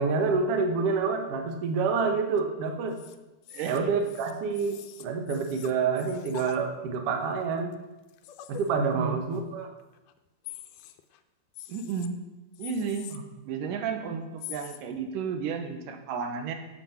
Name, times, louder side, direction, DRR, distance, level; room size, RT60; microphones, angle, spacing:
voice 1, 0.0-3.0 3.6-7.8 8.5-9.7 13.1-13.2, right 5 dB, 60° right, 5 dB, 1.7 m, -27 dB
sound 1, 2.3-2.4 2.9-3.2 3.4-6.6 7.3-7.4 7.7-7.8 8.1-9.0 9.3-9.4 9.8-10.1 10.4-11.2 11.5-12.1 12.5-13.2 14.4-14.8, left 13 dB, 80° left, 2.1 m, -44 dB
voice 2, 3.5-3.9 8.9-9.3 11.7-12.2 12.6-13.1 13.5-16.5, right 6 dB, 85° right, 6 dB, 2.6 m, -32 dB
9.2 x 7.2 x 5.7 m, 1.1 s
omnidirectional pair, 3.7 m